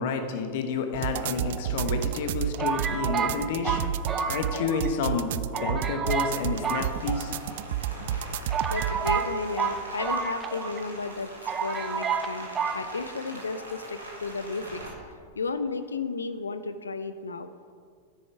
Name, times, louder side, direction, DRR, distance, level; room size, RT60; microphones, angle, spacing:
voice 1, 0.0-3.9 4.3-7.3, left 5 dB, 50° left, 6 dB, 1.1 m, -30 dB
sound 1, 0.9-9.2, right 10 dB, 55° right, 0.3 m, -31 dB
sound 2, 1.1-1.9 2.6-4.9 5.2-5.3 5.5-6.4 6.6-7.6 8.1-8.2 8.5-10.8 11.1-11.2 11.5-12.3 12.6-12.8, right 6 dB, 25° right, 0.8 m, -30 dB
Rain, 6.2-14.9, right 1 dB, 80° right, 2.0 m, -43 dB
voice 2, 8.7-11.3 11.6-12.5 12.7-14.8 15.4-17.5, left 4 dB, 75° left, 12 dB, 0.5 m, -33 dB
9.9 x 8.4 x 4.7 m, 2.1 s
figure-of-eight pair, 90°, 0 cm